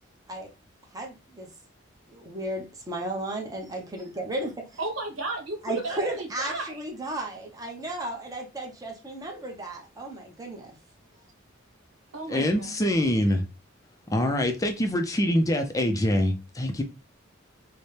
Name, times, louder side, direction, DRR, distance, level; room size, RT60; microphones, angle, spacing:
voice 1, 0.9-1.5 2.1-4.8 5.6-10.7 12.4-12.5, right 1 dB, 20° right, 0.8 m, -34 dB
voice 2, 4.8-6.8 12.1-12.7, right 2 dB, 75° right, 1.1 m, -34 dB
voice 3, 12.3-13.4 14.1-16.8, left 1 dB, 15° left, 0.4 m, -24 dB
4.1 x 2.1 x 3.2 m
head